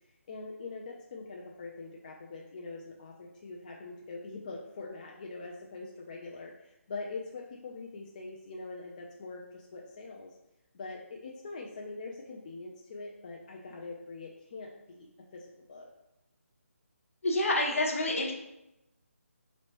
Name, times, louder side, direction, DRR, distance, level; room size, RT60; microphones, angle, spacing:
voice 1, 0.3-10.4 10.7-15.9, left 3 dB, 30° left, -1 dB, 0.3 m, -43 dB
voice 2, 17.2-18.3, left 1 dB, 65° left, 0 dB, 0.9 m, -27 dB
4.2 x 3.0 x 2.9 m, 0.88 s
figure-of-eight pair, 155°, 8 cm